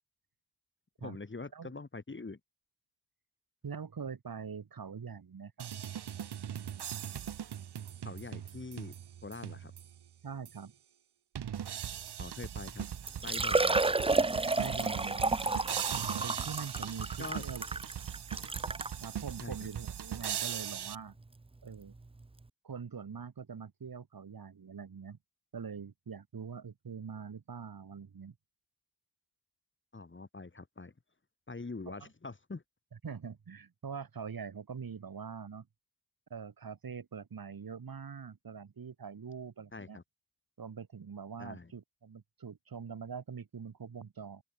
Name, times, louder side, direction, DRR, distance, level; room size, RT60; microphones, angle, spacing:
voice 1, 1.0-2.4 8.0-8.9 9.2-9.7 12.2-12.9 13.2-14.0 17.2-17.4 19.4-19.7 29.9-30.9 31.5-32.6 39.7-40.0 41.4-41.7, left 3 dB, 30° left, 3.1 m, -44 dB
voice 2, 3.6-5.7 10.2-10.7 14.6-15.5 16.2-17.6 19.0-21.2 21.6-21.9 22.6-25.2 25.5-28.4 31.9-32.1 33.0-35.7 36.3-40.0 40.6-44.4, right 6 dB, 60° right, 3.7 m, -43 dB
sound 1, 5.6-10.0 10.5-10.6 11.4-21.0, right 9 dB, 75° right, 1.2 m, -40 dB
Liquid, 12.6-12.7 13.1-19.0 19.7-19.8 20.2-20.3 21.9-22.0 22.2-22.3, right 3 dB, 15° right, 0.7 m, -31 dB
open air
wide cardioid pair, 120°, 40 cm